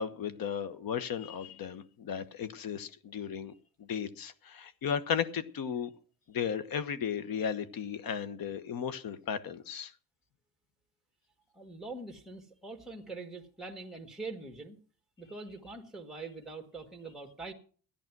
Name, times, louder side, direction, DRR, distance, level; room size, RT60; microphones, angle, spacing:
voice 1, 0.0-3.5 3.8-5.9 6.3-9.9, left 7 dB, 60° left, 14 dB, 1.2 m, -35 dB
voice 2, 11.5-14.8 15.2-17.5, right 3 dB, ahead, 4 dB, 1.9 m, -43 dB
14.0 x 10.5 x 6.0 m, 0.43 s
cardioid pair, 125°, 39 cm